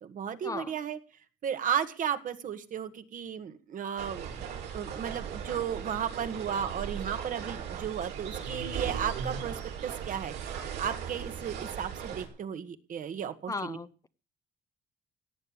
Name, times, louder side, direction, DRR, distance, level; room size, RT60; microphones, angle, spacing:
voice 1, 0.0-1.0 1.4-4.5 4.7-10.3 10.8-13.8, right 8 dB, 50° right, 1.7 m, -34 dB
sound 1, 4.0-12.3, right 7 dB, 80° right, 6.3 m, -38 dB
voice 2, 13.5-14.1, left 3 dB, 20° left, 0.8 m, -36 dB
17.5 x 7.0 x 9.8 m
cardioid pair, 110°, 17 cm